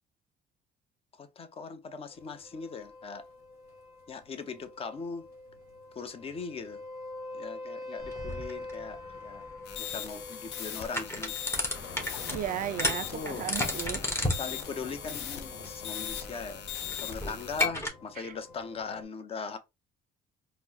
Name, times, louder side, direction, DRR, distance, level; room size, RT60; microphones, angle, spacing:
voice 1, 1.2-3.2 4.1-5.2 5.9-6.8 7.3-9.5 9.8-11.4 12.9-13.5 14.3-16.7 17.0-19.6, left 5 dB, 35° left, 0.6 m, -40 dB
sound 1, 2.1-19.0, left 2 dB, 70° left, 1.2 m, -46 dB
sound 2, 8.0-17.9, left 1 dB, 15° left, 1.0 m, -35 dB
sound 3, 9.7-17.7, left 10 dB, 85° left, 0.6 m, -40 dB
voice 2, 12.3-14.0 18.2-18.3, right 11 dB, 55° right, 0.5 m, -35 dB
4.4 x 2.1 x 2.7 m
cardioid pair, 110°, 17 cm